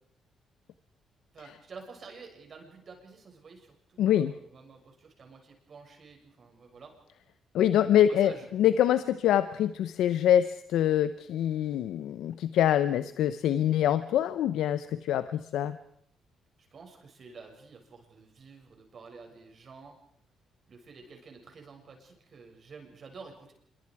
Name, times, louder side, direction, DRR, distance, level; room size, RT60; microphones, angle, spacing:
voice 1, 1.3-6.9 8.1-8.5 16.7-20.0 20.7-23.5, right 4 dB, 50° right, 3 dB, 6.9 m, -50 dB
voice 2, 4.0-4.3 7.5-15.8, left 11 dB, 80° left, 12 dB, 0.8 m, -25 dB
26.5 x 23.5 x 4.9 m, 0.71 s
cardioid pair, 90°, 0 cm